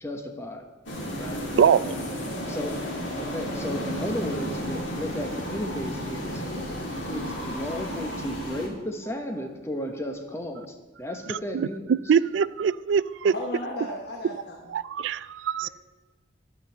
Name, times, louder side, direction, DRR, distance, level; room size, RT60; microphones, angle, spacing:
voice 1, 0.0-0.6 1.2-1.4 2.5-2.8 3.2-6.4 7.1-11.9, left 1 dB, 15° left, 4 dB, 1.0 m, -34 dB
sound 1, 0.9-8.7, equal, 85° left, 2.2 m, -33 dB
voice 2, 1.6-2.0 11.5-11.7 12.1-13.3 14.7-15.7, right 7 dB, 80° right, 17 dB, 0.3 m, -23 dB
voice 3, 13.3-14.7 15.6-15.7, left 1 dB, 55° left, 0 dB, 0.9 m, -35 dB
11.0 x 5.2 x 7.1 m, 1.2 s
head